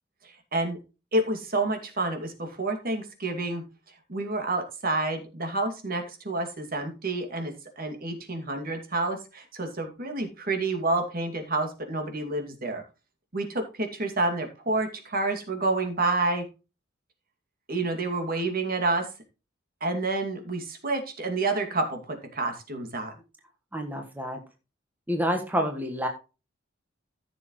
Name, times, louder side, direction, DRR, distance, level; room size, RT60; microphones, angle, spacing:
voice 1, 0.2-0.8 1.1-3.6 4.1-12.8 13.3-16.4 17.7-19.1 19.8-23.1, right 2 dB, 50° right, 4 dB, 2.4 m, -29 dB
voice 2, 23.7-24.4 25.1-26.1, equal, 10° right, 3 dB, 1.4 m, -28 dB
14.5 x 6.8 x 3.1 m, 0.30 s
head